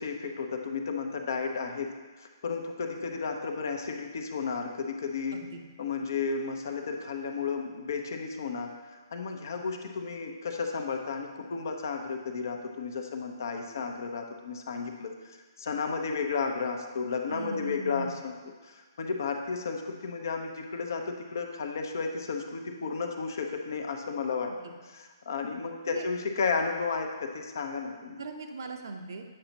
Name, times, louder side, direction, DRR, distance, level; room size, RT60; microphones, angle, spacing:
voice 1, 0.0-1.9 2.2-5.4 5.8-18.3 18.6-24.5 24.8-28.2, left 5 dB, 55° left, 3 dB, 0.8 m, -33 dB
voice 2, 17.3-18.1 24.5-24.6 25.8-26.1 28.2-29.2, right 3 dB, 60° right, 4 dB, 0.8 m, -39 dB
8.6 x 5.8 x 2.8 m, 1.4 s
figure-of-eight pair, 125°, 2 cm